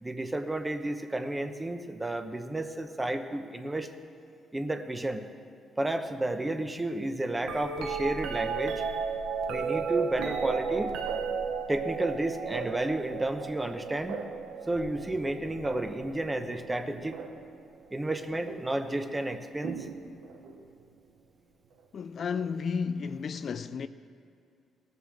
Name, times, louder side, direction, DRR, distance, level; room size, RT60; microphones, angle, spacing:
voice 1, 0.0-3.9 4.5-5.3 5.8-8.8 9.5-10.9 11.7-14.2 14.7-17.2 17.9-19.9, right 1 dB, 15° right, 0.9 m, -32 dB
ring tone, 7.4-17.5 18.5-18.9 19.6-20.6 22.4-22.5, right 5 dB, 85° right, 1.0 m, -34 dB
voice 2, 21.9-23.9, left 6 dB, 55° left, 0.4 m, -32 dB
17.0 x 6.9 x 6.4 m
cardioid pair, 90°, 0 cm